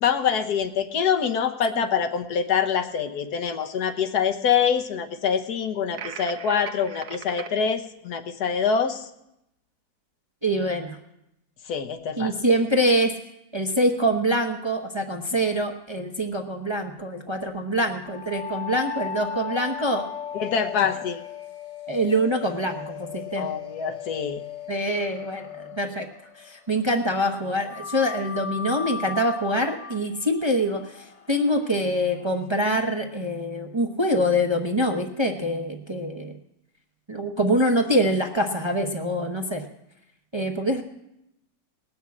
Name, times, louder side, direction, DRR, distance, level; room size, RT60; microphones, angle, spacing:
voice 1, 0.0-9.1 11.7-12.3 20.3-21.2 23.4-24.4, left 7 dB, 80° left, 6 dB, 1.5 m, -25 dB
sound 1, 5.9-7.5, right 8 dB, 75° right, 1.3 m, -38 dB
voice 2, 10.4-11.0 12.2-13.1 13.5-20.0 20.8-20.9 21.9-23.5 24.7-26.1 26.4-36.4 37.1-39.6 40.3-40.8, equal, 25° right, 2 dB, 0.8 m, -25 dB
sound 2, 18.0-26.8 27.7-32.5, left 7 dB, 45° left, 0.4 m, -37 dB
19.0 x 6.4 x 8.4 m, 0.85 s
omnidirectional pair, 1.7 m